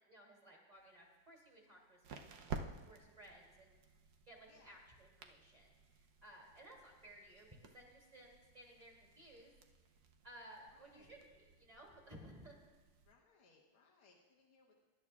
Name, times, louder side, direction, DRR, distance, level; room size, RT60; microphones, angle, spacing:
voice 1, 0.1-3.7 4.2-9.5 10.2-12.6, right 1 dB, 20° right, -2 dB, 2.6 m, -59 dB
sound 1, 0.7-13.1, right 5 dB, 60° right, 1.1 m, -54 dB
voice 2, 4.5-4.8 10.7-11.2 13.0-14.8, left 4 dB, 85° left, -3 dB, 2.1 m, -69 dB
22.5 x 11.0 x 2.4 m, 1.3 s
omnidirectional pair, 2.3 m